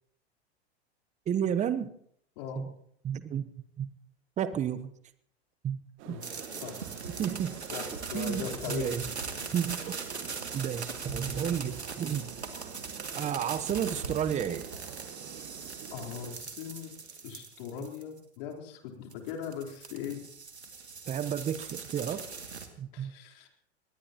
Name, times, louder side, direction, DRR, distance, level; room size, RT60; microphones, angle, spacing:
voice 1, 1.3-1.9 2.6-2.7 3.0-3.5 3.8-3.9 4.4-4.9 5.6-5.8 6.1-6.2 7.2-7.6 7.9-9.1 9.5-10.1 10.5-12.3 13.2-14.7 17.8-17.9 21.1-22.3 22.8-23.1, right 9 dB, 20° right, 14 dB, 0.9 m, -32 dB
sound 1, 6.0-16.3, right 12 dB, 40° right, 1.3 m, -47 dB
sound 2, 6.2-18.2 19.1-22.7, right 4 dB, 85° right, 2.3 m, -40 dB
voice 2, 7.7-8.9 9.4-9.5 15.9-16.9 17.2-20.2 22.9-23.5, left 7 dB, 55° left, 2 dB, 3.9 m, -39 dB
23.5 x 20.0 x 3.0 m, 0.69 s
figure-of-eight pair, 95°, 32 cm